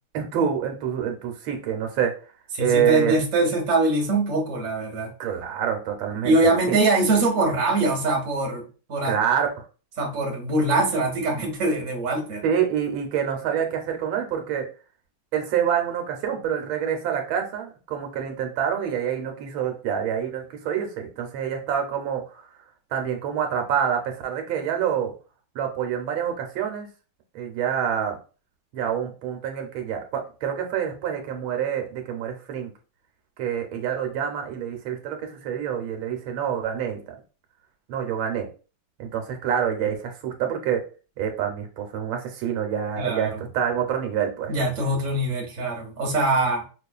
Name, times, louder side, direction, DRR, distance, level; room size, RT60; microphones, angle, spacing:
voice 1, 0.1-2.1 2.6-3.1 5.2-6.8 9.0-9.5 12.4-14.6 15.3-22.5 22.9-25.1 25.5-26.9 27.3-28.2 28.7-32.7 33.4-37.0 37.9-38.5 39.0-40.8 41.2-44.5, right 8 dB, 85° right, 3 dB, 1.5 m, -26 dB
voice 2, 2.6-5.1 6.2-9.2 10.0-12.4 43.0-43.3 44.5-46.6, right 2 dB, 45° right, 0 dB, 1.2 m, -23 dB
5.3 x 2.4 x 2.3 m, 0.36 s
omnidirectional pair, 2.2 m